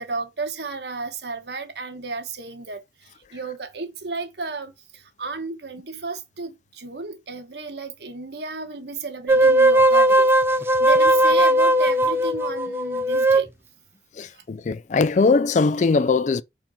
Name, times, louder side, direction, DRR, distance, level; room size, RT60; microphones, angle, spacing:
voice 1, 0.0-2.8 3.3-4.7 5.2-10.3 10.8-13.5, right 3 dB, 70° right, 1.3 m, -32 dB
sound 1, 9.3-13.4, right 1 dB, 15° right, 0.5 m, -18 dB
voice 2, 14.2-16.4, left 4 dB, 45° left, 0.3 m, -20 dB
4.5 x 4.4 x 5.7 m
head